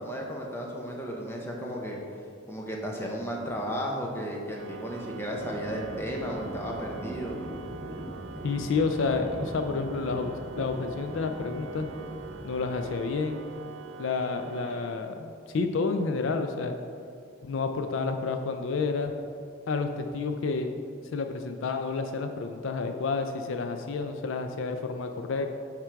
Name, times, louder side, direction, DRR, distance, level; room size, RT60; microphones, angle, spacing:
voice 1, 0.0-2.0 2.5-7.4, equal, 10° left, -1 dB, 0.8 m, -34 dB
Organ, 4.5-15.4, right 6 dB, 60° right, 0.3 m, -45 dB
Livestock farm animals working animals, 4.6-13.6, equal, 5° right, 1.3 m, -42 dB
voice 2, 8.4-11.9 12.4-13.4 14.0-16.8 17.4-19.1 19.7-20.7 21.1-25.5, left 4 dB, 65° left, 6 dB, 0.4 m, -30 dB
9.0 x 3.7 x 4.5 m, 2.4 s
head